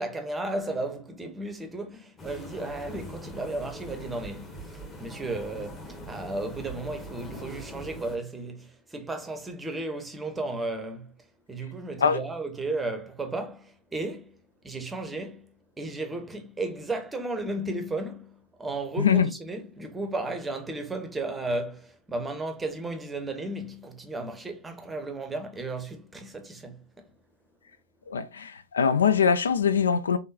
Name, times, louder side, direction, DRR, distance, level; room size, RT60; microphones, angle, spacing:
voice 1, 0.0-11.1 11.5-14.4 14.6-27.1, right 2 dB, 10° right, 0.8 m, -34 dB
sound 1, 2.2-8.2, equal, 15° left, 1.1 m, -42 dB
voice 2, 19.0-19.3 28.1-30.2, left 7 dB, 70° left, 0.3 m, -22 dB
3.6 x 3.4 x 2.6 m
figure-of-eight pair, 90°, 0 cm